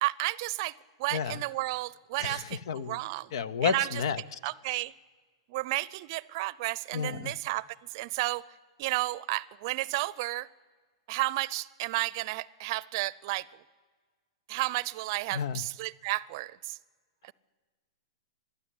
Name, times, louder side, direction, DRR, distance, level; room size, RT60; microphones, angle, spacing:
voice 1, 0.0-0.7 1.0-3.3 3.6-4.0 4.4-4.9 5.5-7.7 7.9-8.4 8.8-10.5 11.1-13.5 14.5-16.8 17.2-17.3, right 20 dB, 50° right, 22 dB, 0.6 m, -32 dB
voice 2, 1.1-1.4 2.2-3.0 3.3-4.4 6.9-7.3 15.3-15.6, left 7 dB, 65° left, 21 dB, 0.9 m, -31 dB
22.0 x 12.5 x 9.8 m, 1.5 s
hypercardioid pair, 120°, 3 cm